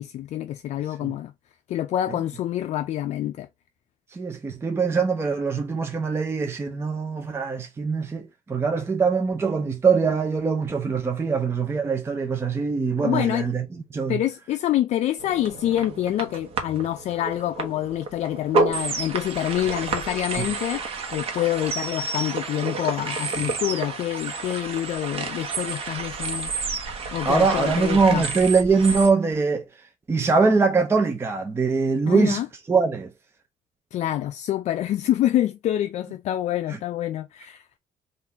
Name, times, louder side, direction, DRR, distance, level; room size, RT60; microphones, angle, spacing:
voice 1, 0.0-1.3 1.7-3.5 13.0-13.5 14.1-20.8 21.1-26.5 27.1-28.2 32.1-32.5 33.9-37.6, left 12 dB, 60° left, 0.4 m, -26 dB
voice 2, 4.1-13.6 13.9-14.2 20.4-20.5 27.0-29.6 30.1-32.4 32.7-33.1, right 4 dB, 20° right, 0.5 m, -23 dB
sound 1, 15.2-29.1, right 4 dB, 45° right, 1.0 m, -30 dB
3.6 x 2.5 x 4.3 m
cardioid pair, 130°, 13 cm